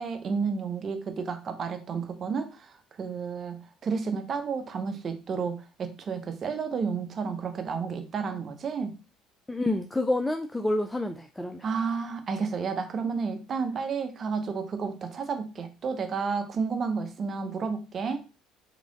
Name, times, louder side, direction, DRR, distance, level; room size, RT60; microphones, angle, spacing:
voice 1, 0.0-9.0 11.6-18.2, right 5 dB, 45° right, 7 dB, 0.8 m, -31 dB
voice 2, 9.5-11.6, left 2 dB, 10° left, 6 dB, 0.4 m, -28 dB
3.7 x 3.1 x 4.0 m, 0.32 s
supercardioid pair, 75°, 0 cm